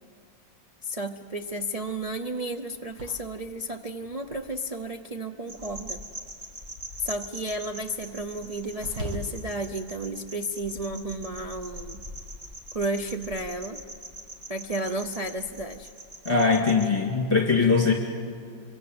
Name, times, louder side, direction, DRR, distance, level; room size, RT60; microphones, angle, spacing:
voice 1, 0.8-6.0 7.0-12.0 12.7-13.8 14.5-15.9, right 1 dB, 65° right, 3 dB, 0.3 m, -32 dB
sound 1, 1.4-5.2 5.4-9.2, left 1 dB, 85° right, 2.6 m, -43 dB
sound 2, 5.5-16.9, right 1 dB, 40° right, 2.5 m, -43 dB
voice 2, 16.3-17.9, left 4 dB, 15° left, 1 dB, 2.1 m, -21 dB
26.0 x 24.5 x 7.9 m, 2.3 s
omnidirectional pair, 2.0 m